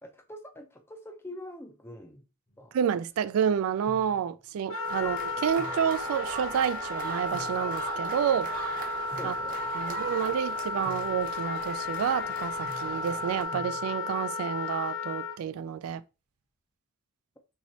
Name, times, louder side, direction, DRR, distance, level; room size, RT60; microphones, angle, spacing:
voice 1, 0.0-2.2 2.6-2.7 5.0-5.1 9.2-10.2, left 1 dB, 10° left, 0.5 m, -45 dB
sound 1, 2.5-3.0 3.8-4.6 5.6-6.7 7.1-8.3 8.9-9.8 10.8-11.6 12.6-14.3, equal, 30° left, 0.9 m, -49 dB
voice 2, 2.7-8.5 9.2-9.3 9.8-16.0, right 8 dB, 80° right, 0.3 m, -29 dB
Wind instrument woodwind instrument, 4.7-15.4, left 3 dB, 75° left, 0.6 m, -34 dB
sound 2, 4.8-13.4, right 3 dB, 40° right, 0.7 m, -40 dB
3.0 x 2.8 x 4.1 m
head